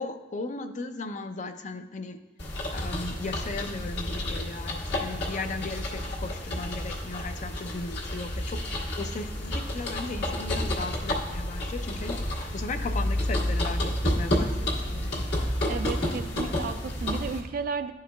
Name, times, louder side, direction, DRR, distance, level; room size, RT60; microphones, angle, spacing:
voice 1, 0.0-2.2 2.7-15.3, left 3 dB, 40° left, 8 dB, 0.4 m, -36 dB
sound 1, 2.4-17.4, left 1 dB, 65° left, 1.7 m, -30 dB
voice 2, 15.7-17.9, right 5 dB, 50° right, 10 dB, 0.3 m, -33 dB
12.0 x 4.8 x 2.2 m, 1.1 s
head